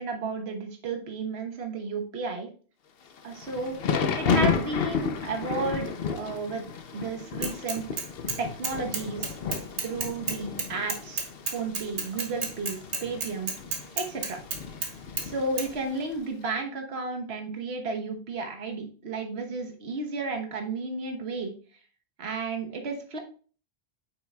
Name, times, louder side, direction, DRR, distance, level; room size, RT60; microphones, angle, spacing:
voice 1, 0.0-2.5 3.2-6.6 6.9-7.9 8.4-9.3 9.8-13.5 14.0-14.4 15.2-21.5 22.2-23.2, right 3 dB, 65° right, 4 dB, 1.4 m, -33 dB
Thunder / Rain, 3.1-16.2, left 6 dB, 60° left, 0.9 m, -32 dB
Bicycle / Mechanisms, 7.4-8.4 8.6-14.9 15.2-15.3 15.6-15.7, right 4 dB, 90° right, 1.5 m, -31 dB
8.1 x 5.9 x 2.3 m, 0.39 s
omnidirectional pair, 1.1 m